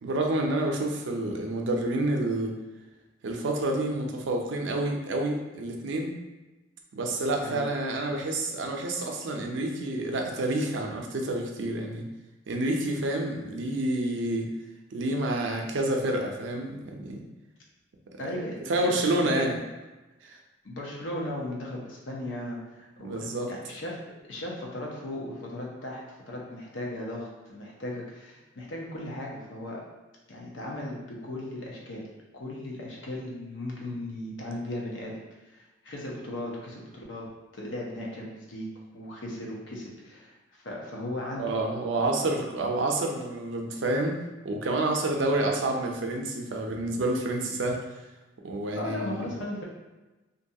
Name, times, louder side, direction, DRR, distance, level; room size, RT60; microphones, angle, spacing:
voice 1, 0.0-2.5 3.2-6.1 6.9-12.0 12.5-14.5 14.9-17.2 18.7-19.6 20.2-20.4 23.0-23.5 41.4-44.2 44.4-47.8 48.4-49.3, right 2 dB, 85° right, 2 dB, 0.4 m, -28 dB
voice 2, 18.2-19.5 20.6-24.0 24.3-29.8 30.3-32.0 32.3-35.1 35.5-38.7 38.9-41.4 48.7-49.6, left 1 dB, 85° left, -2 dB, 0.7 m, -37 dB
2.6 x 2.2 x 2.7 m, 1.1 s
head